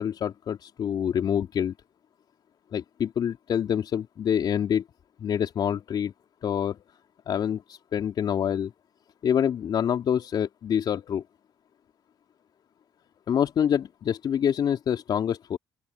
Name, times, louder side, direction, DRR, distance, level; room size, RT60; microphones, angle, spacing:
voice 1, 0.0-1.7 2.7-4.8 5.2-6.1 6.4-6.8 7.3-8.7 9.2-11.2 13.3-15.6, left 8 dB, 60° left, 3.4 m, -26 dB
open air
hypercardioid pair, 55°, 8 cm